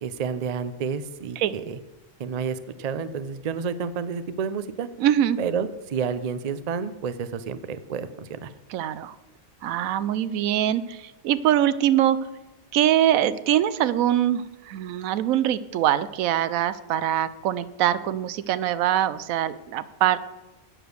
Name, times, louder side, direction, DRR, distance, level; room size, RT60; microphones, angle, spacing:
voice 1, 0.0-1.8 2.2-4.9 5.4-8.5, right 6 dB, 65° right, 13 dB, 0.4 m, -30 dB
voice 2, 5.0-5.4 8.7-9.2 9.6-12.2 12.7-20.2, right 11 dB, 85° right, 15 dB, 1.0 m, -23 dB
8.9 x 6.9 x 6.4 m, 1.0 s
omnidirectional pair, 1.4 m